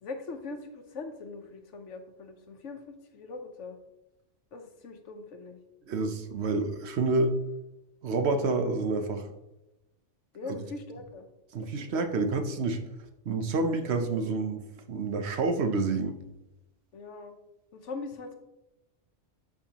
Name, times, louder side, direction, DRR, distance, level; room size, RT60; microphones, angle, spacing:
voice 1, 0.0-2.8 3.1-3.8 4.5-5.6 10.3-11.3 11.7-12.0 16.9-17.3 17.7-18.3, left 3 dB, 85° left, 6 dB, 1.2 m, -41 dB
voice 2, 5.9-7.4 8.0-9.3 11.5-12.8 13.3-14.6 14.9-16.2, right 3 dB, 65° right, 7 dB, 1.0 m, -28 dB
12.0 x 4.7 x 2.9 m, 0.92 s
omnidirectional pair, 1.2 m